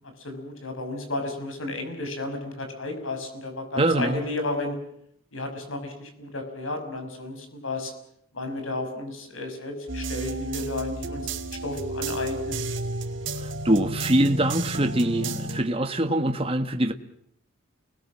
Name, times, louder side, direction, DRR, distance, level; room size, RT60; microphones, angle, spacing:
voice 1, 0.2-4.8 5.3-7.9 8.3-11.3 11.6-12.6, left 2 dB, 75° left, 6 dB, 6.6 m, -32 dB
voice 2, 3.8-4.2 13.4-16.9, right 1 dB, 30° right, 6 dB, 1.4 m, -24 dB
sound 1, 9.9-15.6, right 2 dB, 65° right, 2.8 m, -32 dB
29.5 x 20.5 x 7.5 m, 0.72 s
head